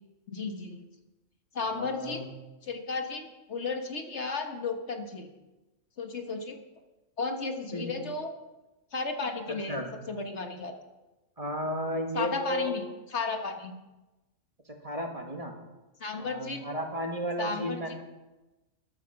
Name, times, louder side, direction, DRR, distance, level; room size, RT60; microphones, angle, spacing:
voice 1, 0.3-0.8 1.5-2.3 2.6-5.3 6.0-6.6 7.2-8.3 8.9-9.8 10.1-10.7 12.1-12.8 13.1-13.7 16.0-16.7 17.4-17.9, left 4 dB, 60° left, 5 dB, 1.6 m, -34 dB
voice 2, 1.7-2.3 7.7-8.0 9.7-9.9 11.4-12.7 14.8-15.5 16.2-17.9, equal, 30° right, 2 dB, 1.8 m, -33 dB
13.0 x 12.0 x 5.8 m, 1.1 s
omnidirectional pair, 1.3 m